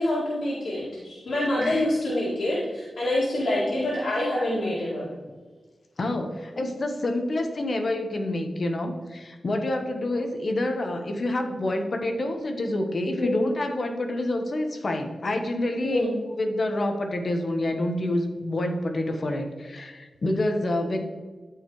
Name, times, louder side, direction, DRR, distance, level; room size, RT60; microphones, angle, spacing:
voice 1, 0.0-5.1 13.2-13.4 15.9-16.1, left 1 dB, 75° left, -9 dB, 2.3 m, -26 dB
voice 2, 6.0-16.0 16.4-21.0, left 1 dB, 55° left, 5 dB, 1.1 m, -27 dB
13.0 x 4.9 x 3.1 m, 1.4 s
cardioid pair, 65°, 0 cm